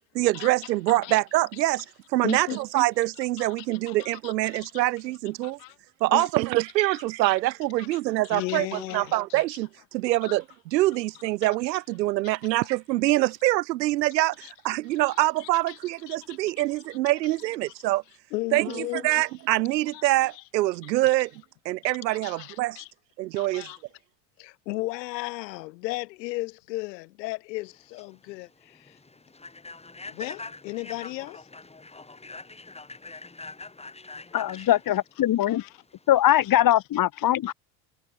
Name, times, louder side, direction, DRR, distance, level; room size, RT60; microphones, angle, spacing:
voice 1, 0.1-1.9 2.1-5.6 6.0-18.0 18.5-21.3 21.7-22.8 23.2-23.7, right 17 dB, 90° right, 1.9 m, -25 dB
voice 2, 0.9-1.2 2.2-2.6 3.4-4.8 5.4-5.7 6.1-6.3 7.9-8.0 8.2-9.4 10.2-10.4 12.2-12.4 14.4-14.5 15.4-15.8 16.1-16.4 18.3-19.1 19.9-20.0 20.3-20.4 20.8-20.9 22.2-22.9 23.4-23.8 24.4-29.0 30.1-31.5 34.5-34.7 35.5-35.7 37.5-37.6, left 21 dB, 80° left, 4.3 m, -36 dB
Human voice / Train, 27.7-36.5, left 3 dB, 10° left, 4.5 m, -44 dB
voice 3, 34.3-35.6 36.1-37.5, left 13 dB, 40° left, 2.8 m, -21 dB
supercardioid pair, 105°, 49 cm